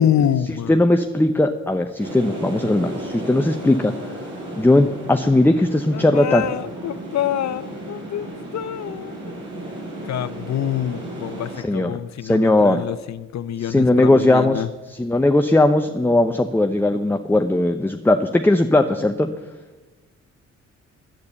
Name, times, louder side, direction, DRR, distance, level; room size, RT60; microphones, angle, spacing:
voice 1, 0.0-0.8 5.9-9.1 10.0-14.7, left 10 dB, 60° left, 15 dB, 0.7 m, -26 dB
voice 2, 0.7-3.9 4.6-6.4 11.6-11.9 12.2-12.8 13.6-14.6 15.0-19.4, left 2 dB, 5° left, 6 dB, 0.7 m, -18 dB
sound 1, 2.0-11.6, right 1 dB, 90° right, 4.6 m, -34 dB
9.6 x 8.8 x 8.1 m, 1.2 s
cardioid pair, 60°, 31 cm